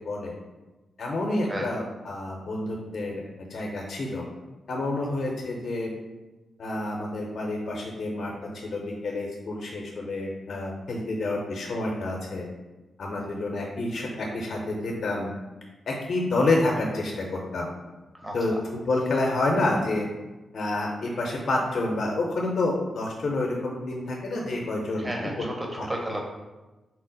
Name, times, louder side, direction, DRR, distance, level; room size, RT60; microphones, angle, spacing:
voice 1, 1.0-3.2 3.5-4.3 4.7-5.9 6.6-12.5 13.0-15.3 15.9-17.7 18.3-18.5 18.9-20.1 20.5-25.1 25.8-25.9, left 2 dB, 60° left, -1 dB, 0.6 m, -28 dB
voice 2, 25.0-26.2, right 1 dB, 25° right, 0 dB, 0.8 m, -33 dB
4.2 x 2.0 x 3.9 m, 1.1 s
supercardioid pair, 40°, 0 cm